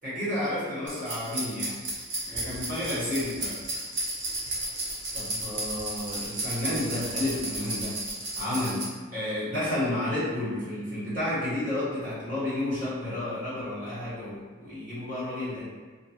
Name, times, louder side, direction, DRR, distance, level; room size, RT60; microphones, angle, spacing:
voice 1, 0.0-1.8 2.2-3.6 5.1-8.0 8.3-8.8 9.1-15.7, left 1 dB, 40° right, -13 dB, 1.5 m, -31 dB
sound 1, 0.9-8.8, right 2 dB, 55° right, 0.6 m, -33 dB
2.5 x 2.5 x 2.6 m, 1.4 s
head